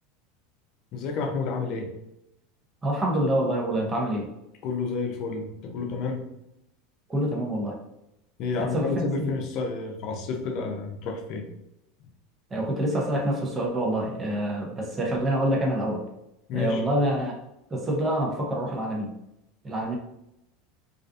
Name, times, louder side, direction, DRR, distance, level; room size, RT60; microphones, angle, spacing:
voice 1, 0.9-1.9 4.6-6.2 8.4-11.4 16.5-16.8, left 4 dB, 55° left, 4 dB, 0.5 m, -30 dB
voice 2, 2.8-4.3 7.1-7.8 8.6-9.3 12.5-16.1 16.5-17.4 17.7-19.1 19.6-20.0, right 1 dB, 20° right, 0 dB, 0.6 m, -26 dB
2.4 x 2.2 x 2.5 m, 0.85 s
hypercardioid pair, 105°, 0 cm